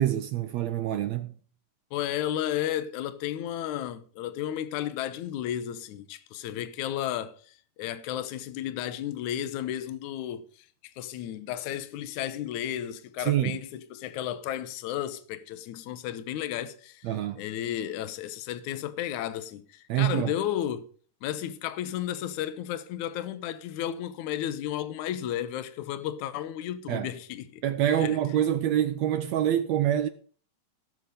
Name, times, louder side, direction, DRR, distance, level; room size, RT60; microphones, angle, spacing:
voice 1, 0.0-1.3 13.2-13.6 17.0-17.4 19.9-20.3 26.9-27.1 27.6-30.1, right 11 dB, 75° right, 1.6 m, -26 dB
voice 2, 1.9-10.5 11.0-17.1 17.4-20.9 21.2-27.6 28.0-28.2, left 11 dB, 75° left, 2.3 m, -33 dB
17.5 x 7.1 x 5.2 m
omnidirectional pair, 3.7 m